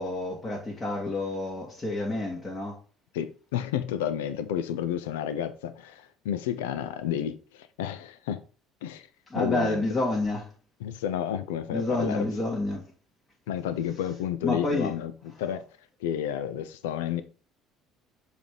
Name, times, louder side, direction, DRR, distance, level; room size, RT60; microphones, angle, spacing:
voice 1, 0.0-2.8 9.3-10.5 11.7-12.8 14.4-14.9, left 2 dB, 30° left, 1.8 m, -29 dB
voice 2, 3.1-8.4 8.8-9.1 9.3-9.9 10.8-12.3 13.5-15.1 15.4-15.6 16.0-17.2, left 10 dB, 70° left, 0.5 m, -31 dB
7.0 x 3.4 x 4.5 m
figure-of-eight pair, 55°, 0 cm